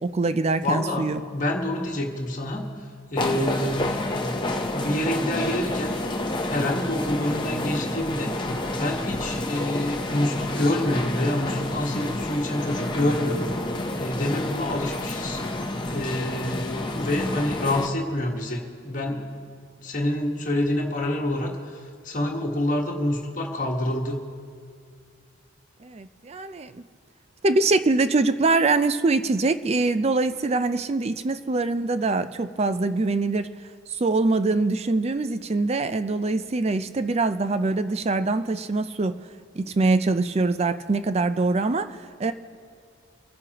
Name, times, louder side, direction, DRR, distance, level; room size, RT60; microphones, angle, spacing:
voice 1, 0.0-1.2 25.8-26.8 27.4-33.5 34.0-39.2 39.6-42.3, right 3 dB, 30° right, 11 dB, 0.4 m, -23 dB
voice 2, 0.6-2.7 3.1-4.4 4.7-6.0 6.5-8.4 8.8-13.6 14.0-15.4 15.9-19.3 19.8-24.2, left 1 dB, 40° left, 0 dB, 1.5 m, -27 dB
sound 1, 3.2-17.9, left 1 dB, 25° left, 0.8 m, -29 dB
28.0 x 9.5 x 3.0 m, 2.1 s
head